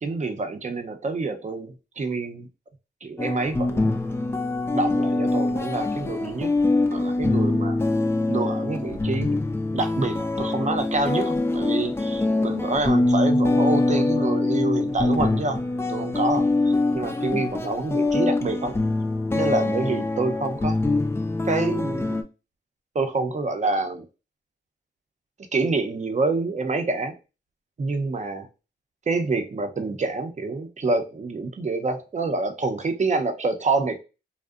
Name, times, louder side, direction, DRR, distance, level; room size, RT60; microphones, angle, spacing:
voice 1, 0.0-2.5 3.0-3.9 4.7-6.5 6.9-7.8 8.3-9.4 9.7-15.6 15.9-18.7 19.3-20.8 21.5-22.2 22.9-24.1 25.5-27.2 27.8-28.5 29.1-34.0, right 3 dB, 40° right, 6 dB, 0.6 m, -27 dB
sound 1, 3.2-22.2, left 2 dB, 15° left, 0.3 m, -24 dB
2.6 x 2.1 x 2.3 m, 0.30 s
cardioid pair, 65°, 20 cm